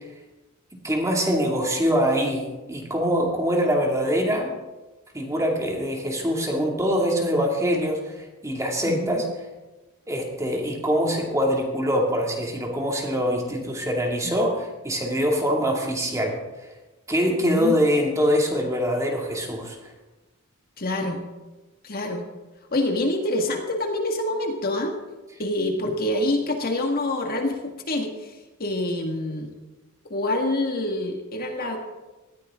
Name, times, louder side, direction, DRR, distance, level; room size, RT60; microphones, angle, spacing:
voice 1, 0.8-4.5 5.1-9.2 10.1-16.4 17.1-19.8, equal, 15° right, 0 dB, 2.5 m, -24 dB
voice 2, 8.9-9.2 14.2-14.3 17.4-17.8 20.8-21.2 21.8-22.2 22.7-24.9 25.4-29.5 30.1-31.8, left 1 dB, 45° left, 2 dB, 1.9 m, -26 dB
19.5 x 14.5 x 3.8 m, 1.1 s
head